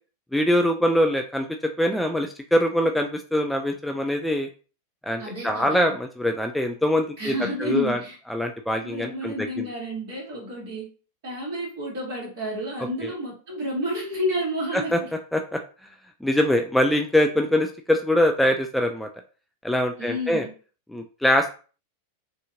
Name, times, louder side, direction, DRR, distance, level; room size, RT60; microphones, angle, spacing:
voice 1, 0.3-1.5 1.8-4.5 5.0-7.3 7.6-8.0 8.3-9.7 13.0-13.1 14.7-15.0 15.3-15.6 16.2-19.1 19.6-20.5 20.9-21.5, left 1 dB, 5° left, 3 dB, 0.4 m, -23 dB
voice 2, 5.2-5.9 7.2-8.2 8.8-10.9 11.2-15.1 20.0-20.5, equal, 50° right, -2 dB, 2.3 m, -30 dB
6.2 x 2.8 x 2.5 m, 0.37 s
figure-of-eight pair, 90°, 0 cm